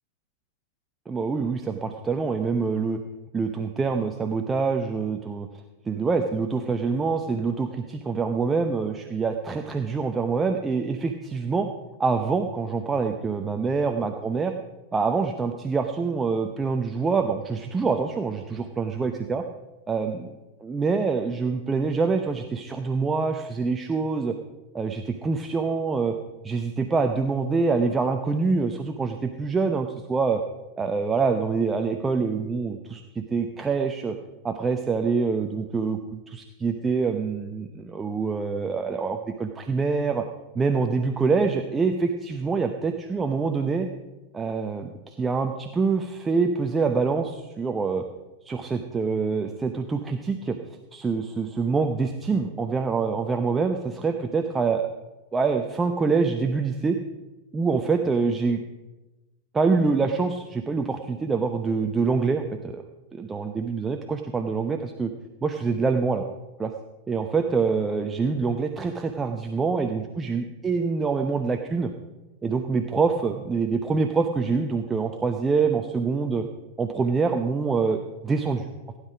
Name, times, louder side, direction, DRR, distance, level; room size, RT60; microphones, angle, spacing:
voice 1, 1.1-3.0 3.3-5.5 5.8-11.7 12.0-14.5 14.9-19.4 19.9-24.3 24.7-26.2 26.4-30.4 30.8-34.1 34.4-40.2 40.5-43.9 44.3-48.0 48.4-50.6 50.9-54.9 55.3-57.0 57.5-58.6 59.5-62.8 63.1-65.1 65.4-66.2 66.6-66.7 67.1-71.9 72.4-76.4 76.8-78.7, right 4 dB, 15° right, 5 dB, 0.8 m, -25 dB
16.0 x 9.9 x 5.0 m, 1.1 s
figure-of-eight pair, 90°, 0 cm